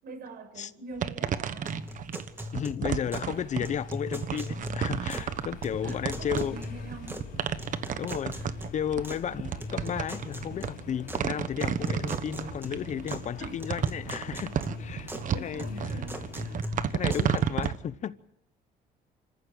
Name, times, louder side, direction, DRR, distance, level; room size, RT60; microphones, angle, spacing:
voice 1, 0.0-1.9 5.8-7.2 7.6-8.0 8.3-8.5 13.3-13.6 15.2-16.9, right 2 dB, 65° right, 5.9 m, -44 dB
sound 1, 1.0-17.8, right 9 dB, 50° right, 1.2 m, -32 dB
sound 2, 1.7-3.3 3.6-5.3 5.6-7.3 7.6-9.2 9.6-11.2 11.6-13.3 13.6-15.3 15.6-17.7, left 1 dB, 15° right, 2.5 m, -40 dB
voice 2, 2.5-6.6 8.0-8.4 8.7-16.0 16.9-18.2, left 8 dB, 45° left, 0.8 m, -33 dB
sound 3, 2.9-16.6, left 5 dB, 65° left, 5.6 m, -46 dB
26.5 x 15.0 x 8.9 m
cardioid pair, 110°, 17 cm